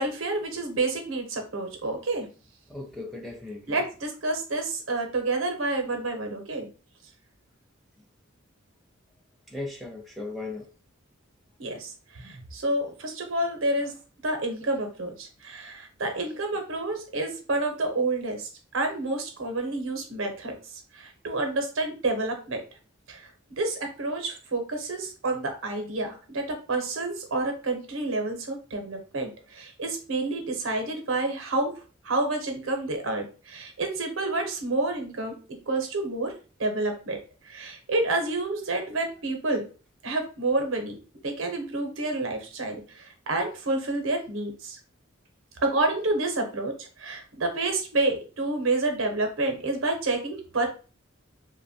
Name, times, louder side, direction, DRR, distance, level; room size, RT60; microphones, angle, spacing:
voice 1, 0.0-2.3 3.7-6.7 11.6-13.9 14.2-22.6 23.1-23.3 23.6-31.7 32.0-35.4 35.7-36.3 36.6-37.2 37.4-39.6 40.0-41.0 41.2-44.8 45.6-50.7, right 2 dB, 75° right, 4 dB, 0.7 m, -29 dB
voice 2, 2.7-3.8 9.5-10.6, left 2 dB, ahead, -2 dB, 0.5 m, -37 dB
2.8 x 2.1 x 2.7 m, 0.36 s
head